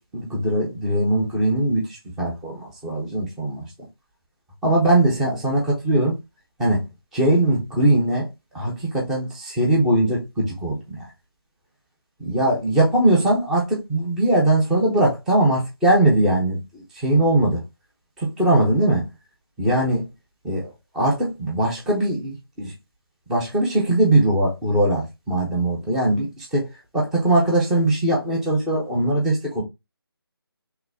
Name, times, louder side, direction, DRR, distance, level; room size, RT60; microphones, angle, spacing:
voice 1, 0.1-3.7 4.6-6.2 6.6-6.9 7.1-8.3 8.5-11.1 12.2-17.6 18.2-19.1 19.6-20.1 20.4-22.7 23.3-26.7 26.9-29.6, right 1 dB, 5° right, 0.4 m, -21 dB
3.8 x 3.0 x 2.5 m
figure-of-eight pair, 155°, 13 cm